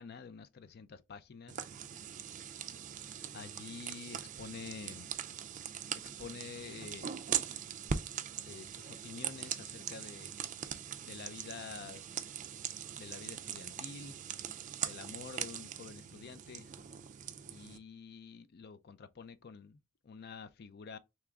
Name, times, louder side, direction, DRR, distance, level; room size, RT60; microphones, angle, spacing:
voice 1, 0.0-1.7 3.3-5.1 6.2-7.1 8.5-10.3 11.0-12.0 12.9-14.2 14.8-16.7 17.4-21.0, left 5 dB, 50° left, 0.4 m, -48 dB
sound 1, 1.5-17.8, right 8 dB, 35° right, 0.4 m, -41 dB
3.6 x 3.0 x 3.4 m
head